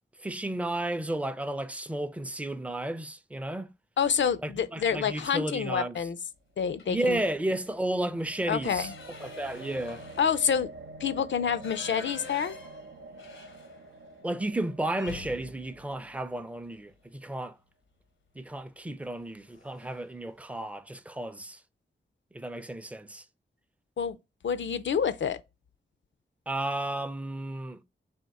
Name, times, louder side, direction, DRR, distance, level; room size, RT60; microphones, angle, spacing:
voice 1, 0.2-3.7 4.4-6.1 6.9-8.9 9.2-10.0 14.2-17.6 18.4-21.6 22.3-23.3 26.5-27.8, right 1 dB, 5° right, 0.4 m, -33 dB
voice 2, 4.0-6.2 6.6-7.2 8.5-8.9 10.2-10.7 11.0-12.5 24.0-24.2 24.4-25.4, left 7 dB, 70° left, 0.4 m, -28 dB
sound 1, 6.6-16.7, right 2 dB, 85° right, 0.5 m, -48 dB
sound 2, 6.7-7.2 7.6-7.7 8.1-14.1 14.4-14.5 14.9-17.1 18.4-18.7 19.1-19.2 19.5-20.1, left 4 dB, 90° left, 0.8 m, -48 dB
3.5 x 2.8 x 4.0 m
wide cardioid pair, 85°, 20 cm